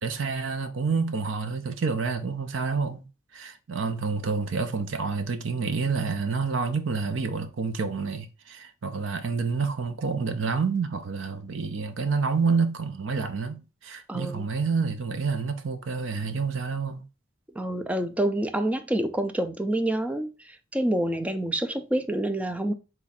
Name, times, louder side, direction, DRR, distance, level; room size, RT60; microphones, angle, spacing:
voice 1, 0.0-3.1 3.3-17.0, right 5 dB, 70° right, 0.5 m, -28 dB
voice 2, 14.1-14.5 17.6-22.7, right 1 dB, 5° right, 0.3 m, -27 dB
4.0 x 2.4 x 4.1 m
head